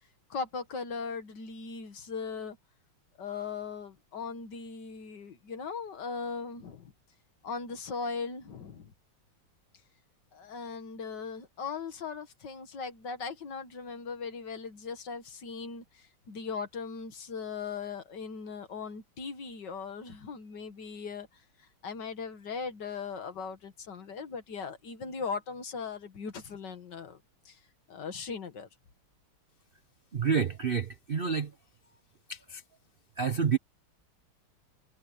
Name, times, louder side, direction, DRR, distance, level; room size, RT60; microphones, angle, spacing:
voice 1, 0.3-2.6 3.2-6.9 7.4-8.9 10.3-27.2 27.5-27.6 27.9-28.7, left 5 dB, 55° left, 2.1 m, -39 dB
voice 2, 30.1-31.5 32.3-32.6 33.2-33.6, right 6 dB, 55° right, 0.6 m, -29 dB
omnidirectional pair, 2.4 m